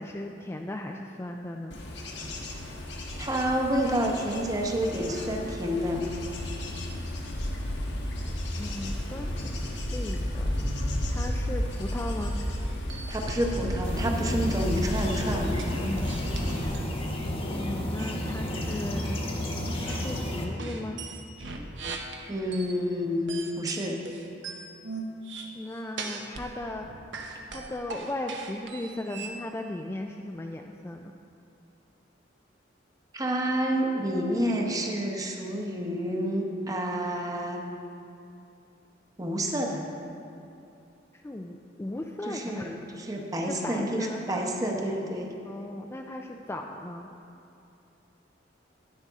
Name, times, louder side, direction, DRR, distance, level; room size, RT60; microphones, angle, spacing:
voice 1, 0.0-1.8 8.6-10.7 11.1-12.4 17.5-19.2 19.9-21.0 25.5-26.9 27.5-31.1 41.2-42.9 43.5-44.6 45.5-47.1, left 1 dB, 15° left, 2 dB, 0.3 m, -37 dB
Bird / Insect / Wind, 1.7-16.7, left 1 dB, 65° left, 1.2 m, -33 dB
voice 2, 3.2-6.0 13.1-15.6 22.3-24.0 33.1-37.7 39.2-39.9 42.3-45.3, equal, 20° right, 1 dB, 0.9 m, -29 dB
sound 1, 12.6-14.5 14.8-16.9 18.0-18.1 18.7-19.1 19.4-20.0 20.6-22.8 23.3-26.5 26.8-29.4, right 4 dB, 70° right, 0.9 m, -40 dB
sound 2, 13.8-20.5, left 1 dB, 30° left, 1.0 m, -32 dB
10.5 x 10.5 x 3.6 m, 2.7 s
head